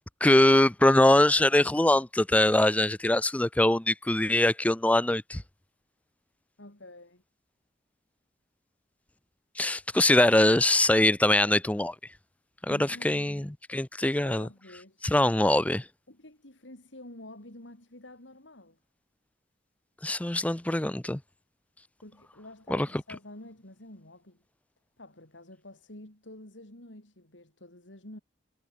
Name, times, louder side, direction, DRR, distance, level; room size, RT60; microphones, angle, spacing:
voice 1, 0.2-5.4 9.6-11.9 12.7-14.5 15.0-15.8 20.0-21.2 22.7-22.9, left 1 dB, 10° left, 0.5 m, -23 dB
voice 2, 6.6-7.2 12.7-13.3 14.0-15.1 16.1-18.8 22.0-24.4 25.0-28.2, left 1 dB, 85° left, 4.5 m, -48 dB
head